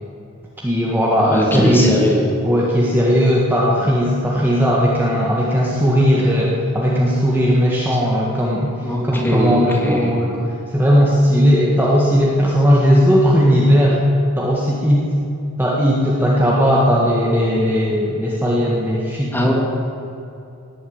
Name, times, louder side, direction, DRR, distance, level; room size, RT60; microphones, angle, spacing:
voice 1, 0.6-2.0 2.4-8.7 9.0-10.3 10.7-14.0 14.4-15.1 15.6-19.5, equal, 10° right, -5 dB, 1.7 m, -17 dB
voice 2, 1.2-2.2 8.8-10.1 19.3-19.5, equal, 10° left, -2 dB, 2.8 m, -20 dB
18.0 x 8.9 x 8.8 m, 2.7 s
head